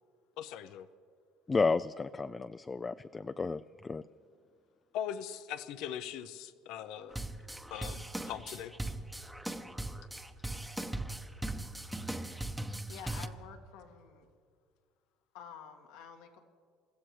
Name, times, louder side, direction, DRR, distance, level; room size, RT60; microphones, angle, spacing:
voice 1, 0.4-0.9 4.9-7.2 7.7-8.7, left 10 dB, 70° left, 11 dB, 0.6 m, -40 dB
voice 2, 1.5-4.0, left 4 dB, 20° left, 12 dB, 0.3 m, -32 dB
sound 1, 7.1-13.3, right 1 dB, 5° right, 0.8 m, -39 dB
voice 3, 12.8-14.2 15.3-16.4, left 7 dB, 90° left, 1 dB, 1.9 m, -49 dB
29.0 x 15.0 x 3.2 m, 2.2 s
supercardioid pair, 110°, 0 cm